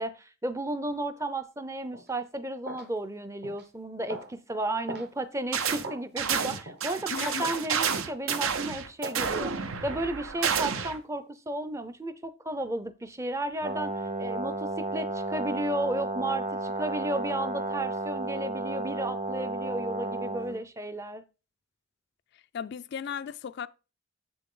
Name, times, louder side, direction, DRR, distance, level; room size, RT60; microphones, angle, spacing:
voice 1, 0.0-9.6 9.8-13.9 14.2-21.2, right 1 dB, 15° right, 0.5 m, -33 dB
sound 1, 1.9-2.1 2.6-2.9 3.4-3.6 4.1-4.3 4.9-5.1 5.8-6.0 6.6-6.8 7.4-7.7 8.3-8.5 9.0-9.3 9.9-10.1 10.8-11.0, right 1 dB, 50° right, 1.1 m, -40 dB
sound 2, 5.5-5.9 6.2-11.0, right 6 dB, 75° right, 0.8 m, -30 dB
voice 2, 7.1-7.5 22.3-23.7, left 7 dB, 50° left, 0.3 m, -36 dB
Brass instrument, 13.6-20.6, right 2 dB, 30° right, 1.0 m, -33 dB
7.5 x 6.9 x 3.7 m
head